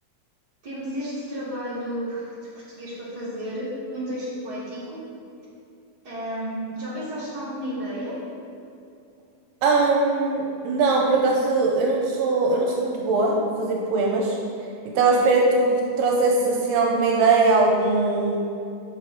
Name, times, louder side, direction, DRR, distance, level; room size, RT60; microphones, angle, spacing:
voice 1, 0.6-2.3 2.7-5.0 6.0-8.2, equal, 40° right, -9 dB, 1.5 m, -32 dB
voice 2, 9.6-14.4 14.9-18.5, right 3 dB, 85° right, -1 dB, 2.6 m, -21 dB
7.0 x 6.1 x 4.8 m, 2.6 s
omnidirectional pair, 4.7 m